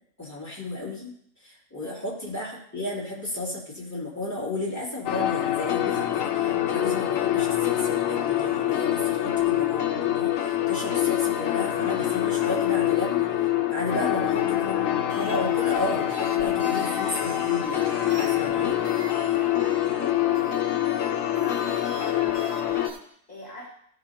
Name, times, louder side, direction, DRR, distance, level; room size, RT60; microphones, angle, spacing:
voice 1, 0.2-1.1 1.4-13.3 13.7-14.3 14.6-14.9 15.1-17.8 18.1-18.7, left 2 dB, 10° left, -6 dB, 2.8 m, -33 dB
sound 1, 5.1-22.9, left 12 dB, 75° left, 1.0 m, -25 dB
voice 2, 13.9-14.3 19.3-23.7, left 1 dB, 30° left, -5 dB, 1.6 m, -44 dB
sound 2, 15.0-23.0, right 3 dB, 65° right, 1.5 m, -44 dB
14.5 x 6.9 x 2.9 m, 0.69 s
omnidirectional pair, 1.4 m